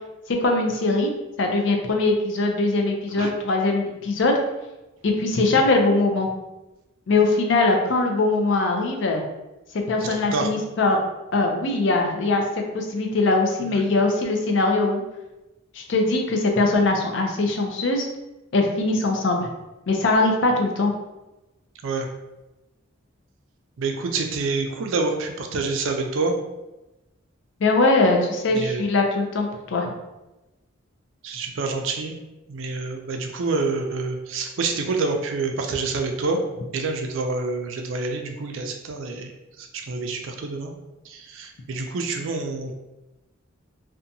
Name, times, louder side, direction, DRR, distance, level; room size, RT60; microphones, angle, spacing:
voice 1, 0.4-1.1 1.4-4.4 5.0-6.3 7.1-9.2 9.7-11.0 11.3-12.4 12.7-15.0 15.7-18.1 18.5-19.5 19.9-20.9 27.6-29.9, left 2 dB, 60° left, 2 dB, 0.5 m, -21 dB
voice 2, 23.8-26.3 28.5-28.8 31.2-32.2 32.5-36.4 36.7-39.3 39.6-40.7 41.1-42.7, right 3 dB, 70° right, 4 dB, 0.4 m, -27 dB
2.7 x 2.2 x 2.6 m, 1.0 s
head